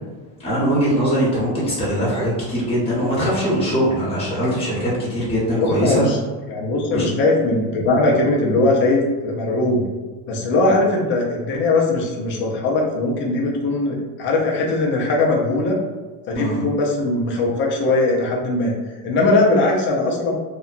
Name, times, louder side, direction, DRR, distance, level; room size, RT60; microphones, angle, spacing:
voice 1, 0.4-6.0 6.9-7.0 10.5-10.8 16.3-16.6, equal, 15° left, -7 dB, 1.0 m, -21 dB
voice 2, 5.6-6.2 6.5-9.9 10.3-15.8 16.3-18.7 19.0-20.4, left 2 dB, 30° left, -2 dB, 0.4 m, -20 dB
2.8 x 2.1 x 2.4 m, 1.3 s
cardioid pair, 145°, 45 cm